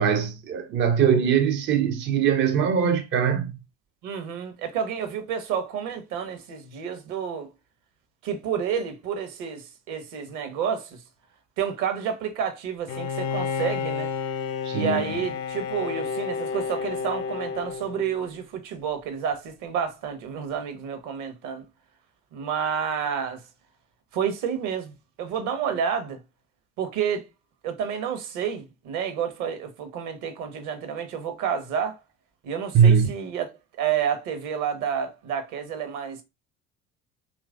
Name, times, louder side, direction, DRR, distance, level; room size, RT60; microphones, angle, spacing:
voice 1, 0.0-3.6 14.6-15.0 32.7-33.1, right 7 dB, 30° right, 0.4 m, -21 dB
voice 2, 4.0-7.5 8.2-11.0 11.6-14.1 14.7-21.6 22.3-23.4 24.1-24.9 25.2-26.2 26.8-27.3 27.6-32.0 32.4-33.5 33.8-36.2, right 7 dB, 55° right, 0.8 m, -29 dB
Bowed string instrument, 12.9-18.5, left 6 dB, 65° left, 0.6 m, -31 dB
2.9 x 2.4 x 2.3 m
figure-of-eight pair, 55°, 38 cm